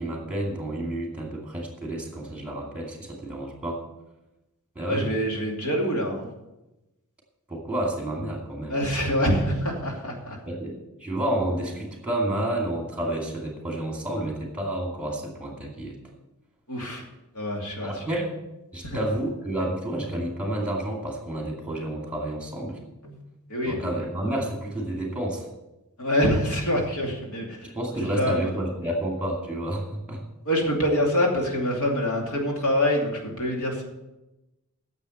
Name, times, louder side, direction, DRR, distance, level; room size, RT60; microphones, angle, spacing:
voice 1, 0.0-3.8 4.7-5.0 7.5-8.8 10.5-16.0 17.8-18.3 18.7-22.8 23.6-25.5 27.7-30.2, right 1 dB, 5° right, -1 dB, 2.4 m, -30 dB
voice 2, 4.9-6.3 8.7-10.4 16.7-17.0 17.3-18.0 18.8-19.0 23.0-23.2 23.5-23.8 26.0-27.7 28.0-28.5 30.4-33.8, equal, 75° left, 0 dB, 2.6 m, -25 dB
9.9 x 7.3 x 7.8 m, 0.99 s
head